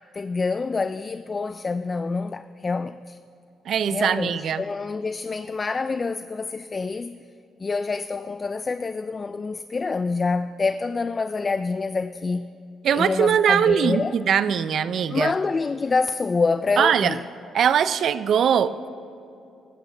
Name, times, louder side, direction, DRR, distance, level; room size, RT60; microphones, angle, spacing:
voice 1, 0.1-3.2 3.9-7.2 7.6-12.5 12.9-14.1 15.1-17.2, left 4 dB, 30° left, 0.3 m, -26 dB
voice 2, 3.7-4.6 12.8-15.3 16.8-17.2 17.5-18.9, right 8 dB, 65° right, 0.4 m, -21 dB
15.5 x 12.5 x 3.3 m
cardioid pair, 90°, 0 cm